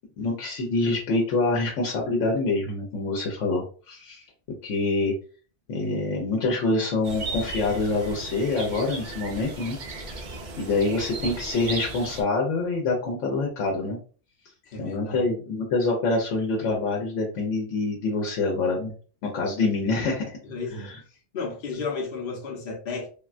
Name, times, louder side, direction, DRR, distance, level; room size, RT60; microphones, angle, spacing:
voice 1, 0.2-4.2 4.6-5.1 5.7-9.8 10.1-10.2 10.6-14.0 14.8-18.9 19.2-20.4 20.7-21.0, left 3 dB, 85° left, -1 dB, 1.0 m, -26 dB
sound 1, 7.0-12.2, right 3 dB, 50° right, 0.6 m, -36 dB
voice 2, 14.6-15.3 20.5-20.9 21.3-23.1, left 4 dB, 55° left, -1 dB, 0.9 m, -33 dB
3.6 x 2.2 x 2.4 m, 0.39 s
omnidirectional pair, 1.2 m